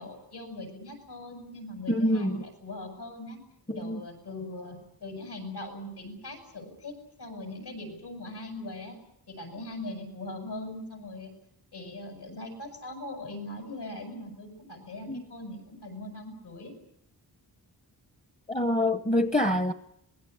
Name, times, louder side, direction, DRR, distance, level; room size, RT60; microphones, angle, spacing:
voice 1, 0.0-3.4 3.7-9.0 9.3-11.3 11.7-16.8, left 2 dB, 70° left, 7.9 m, -41 dB
voice 2, 1.9-2.4 3.7-4.0 15.1-15.2 18.5-19.7, left 1 dB, 20° left, 0.9 m, -26 dB
25.5 x 21.0 x 8.5 m
wide cardioid pair, 135°, 40 cm